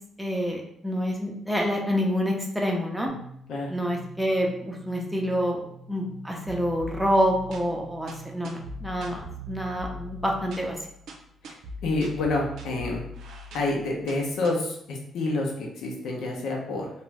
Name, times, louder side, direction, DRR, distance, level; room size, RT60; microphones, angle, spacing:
voice 1, 0.2-3.1 3.7-5.6 5.9-10.7, equal, 5° right, -1 dB, 0.6 m, -27 dB
sound 1, 3.1-10.6, right 5 dB, 35° left, 0.6 m, -46 dB
sound 2, 6.5-14.5, equal, 75° right, 0.5 m, -42 dB
voice 2, 11.8-13.0 13.5-16.9, left 2 dB, 80° left, 0 dB, 0.6 m, -28 dB
2.5 x 2.2 x 3.2 m, 0.71 s
cardioid pair, 90°, 0 cm